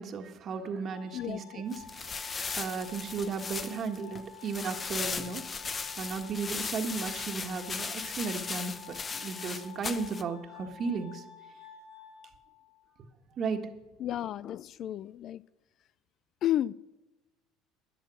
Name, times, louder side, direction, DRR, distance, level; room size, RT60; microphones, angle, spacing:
voice 1, 0.0-5.4 5.7-11.2 13.4-13.6, right 5 dB, 45° right, 1.6 m, -35 dB
Glass, 0.8-12.8, left 6 dB, 85° left, 2.4 m, -51 dB
voice 2, 1.1-1.6 14.0-15.4 16.4-16.7, left 12 dB, 55° left, 0.3 m, -32 dB
sound 1, 1.7-10.2, left 5 dB, 30° left, 0.9 m, -37 dB
12.5 x 10.0 x 6.3 m
hypercardioid pair, 75°, 0 cm